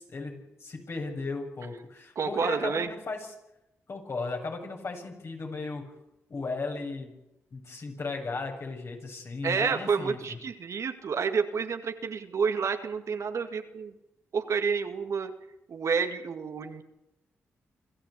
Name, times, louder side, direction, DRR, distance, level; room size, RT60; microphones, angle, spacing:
voice 1, 0.0-3.3 3.9-5.9 6.3-7.1 7.5-10.4, left 3 dB, 55° left, 1 dB, 7.5 m, -36 dB
voice 2, 2.2-2.9 9.4-13.9 14.3-15.3 15.7-16.8, right 6 dB, 65° right, 7 dB, 2.1 m, -29 dB
26.5 x 14.0 x 8.6 m, 0.90 s
supercardioid pair, 45°, 5 cm